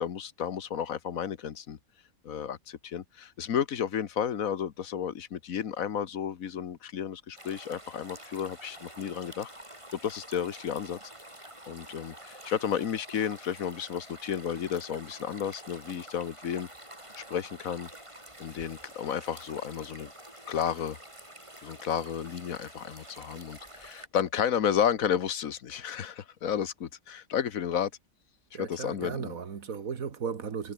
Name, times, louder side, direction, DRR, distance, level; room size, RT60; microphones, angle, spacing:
voice 1, 0.0-1.8 2.2-9.5 9.9-11.0 11.7-16.7 17.2-17.9 18.4-20.1 20.4-21.0 21.6-27.9 28.6-29.3, left 8 dB, 80° left, 1.6 m, -32 dB
sound 1, 7.4-24.1, right 1 dB, 20° right, 5.1 m, -48 dB
voice 2, 28.5-30.7, right 6 dB, 85° right, 2.1 m, -36 dB
omnidirectional pair, 1.4 m